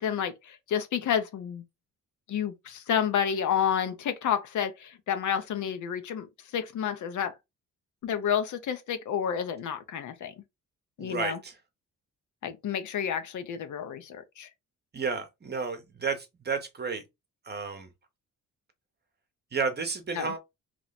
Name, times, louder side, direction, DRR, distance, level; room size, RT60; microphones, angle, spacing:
voice 1, 0.0-1.6 2.3-6.3 6.5-7.3 8.0-10.3 11.0-11.4 12.4-14.5 20.1-20.3, left 8 dB, 70° left, 0.7 m, -30 dB
voice 2, 11.0-11.6 14.9-17.0 17.4-17.9 19.5-20.4, right 5 dB, 30° right, 0.8 m, -32 dB
3.0 x 2.0 x 4.0 m
cardioid pair, 90°, 31 cm